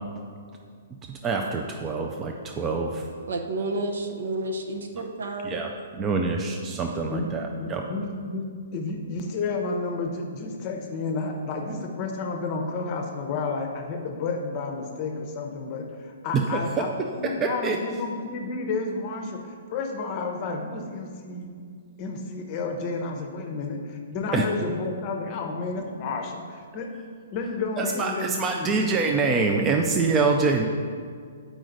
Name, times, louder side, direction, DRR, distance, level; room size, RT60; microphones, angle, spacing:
voice 1, 1.2-3.0 5.4-7.8 16.3-16.6 17.4-17.8 24.3-24.5 27.8-30.6, right 4 dB, 15° right, 2 dB, 0.3 m, -25 dB
voice 2, 3.3-5.6, right 2 dB, 80° right, 4 dB, 0.8 m, -30 dB
voice 3, 7.6-8.5 8.7-21.5 22.0-26.9 27.3-28.8, left 4 dB, 25° left, 3 dB, 0.7 m, -31 dB
7.6 x 5.0 x 3.9 m, 2.1 s
hypercardioid pair, 170°, 0 cm